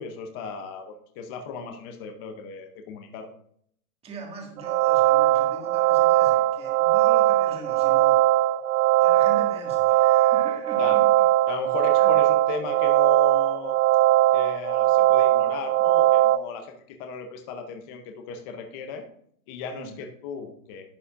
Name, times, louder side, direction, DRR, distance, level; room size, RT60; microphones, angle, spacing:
voice 1, 0.0-3.3 10.8-11.0 11.5-13.8 14.3-19.0 19.5-20.8, left 5 dB, 15° left, 5 dB, 0.5 m, -36 dB
voice 2, 4.0-8.2 9.0-11.1 11.9-12.1 19.7-20.0, right 3 dB, 15° right, 1 dB, 1.7 m, -41 dB
sound 1, 4.6-16.4, right 15 dB, 75° right, 0.6 m, -20 dB
11.0 x 8.1 x 2.4 m, 0.66 s
hypercardioid pair, 145°, 44 cm